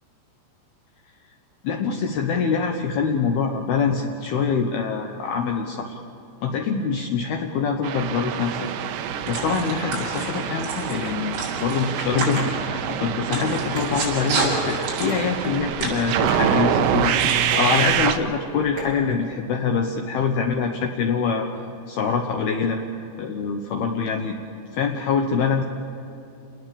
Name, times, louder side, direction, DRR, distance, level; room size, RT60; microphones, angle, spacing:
voice 1, 1.6-6.0 6.4-8.7 9.3-17.1 17.6-21.5 21.9-22.8 23.2-24.4 24.7-25.6, left 5 dB, 75° left, 3 dB, 2.3 m, -24 dB
sound 1, 7.8-18.2, right 10 dB, 75° right, 2.8 m, -26 dB
sound 2, 9.0-17.3, right 2 dB, 60° right, 8.6 m, -30 dB
sound 3, 12.4-19.0, equal, 40° right, 9.0 m, -38 dB
29.0 x 19.5 x 7.0 m, 2.8 s
omnidirectional pair, 6.0 m